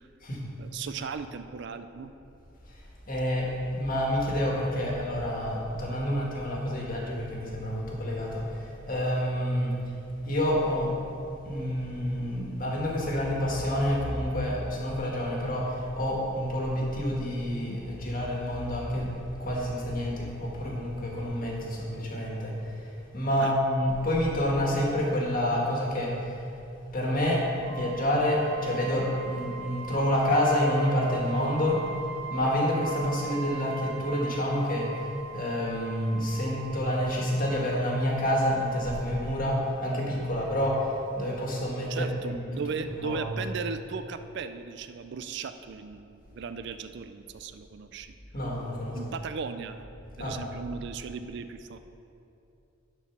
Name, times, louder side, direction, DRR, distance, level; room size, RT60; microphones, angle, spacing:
voice 1, 0.6-2.1 23.4-23.5 41.9-48.1 49.0-49.9 50.2-51.8, right 5 dB, 60° right, 10 dB, 0.4 m, -37 dB
voice 2, 2.7-9.7 10.2-11.0 11.4-26.4 26.9-27.4 27.7-31.8 32.3-42.4 42.8-43.2 48.3-49.0 50.2-50.4, equal, 45° left, -3 dB, 1.7 m, -28 dB
sound 1, 27.6-39.1, right 6 dB, 20° left, 1.4 m, -41 dB
10.0 x 4.6 x 6.1 m, 2.7 s
head